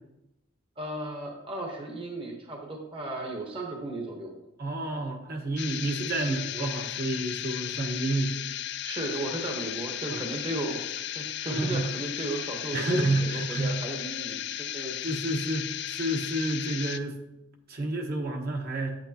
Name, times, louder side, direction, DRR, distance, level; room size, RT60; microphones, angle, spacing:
voice 1, 0.8-4.3 8.8-14.4 14.7-14.9, right 2 dB, 30° right, 1 dB, 1.1 m, -35 dB
voice 2, 4.6-8.3 10.1-10.2 11.4-11.9 12.7-13.8 15.0-17.2 17.7-19.0, right 2 dB, 55° right, 1 dB, 1.3 m, -29 dB
sound 1, 5.6-17.0, left 12 dB, 60° left, 0.4 m, -35 dB
9.1 x 8.8 x 2.9 m, 0.91 s
head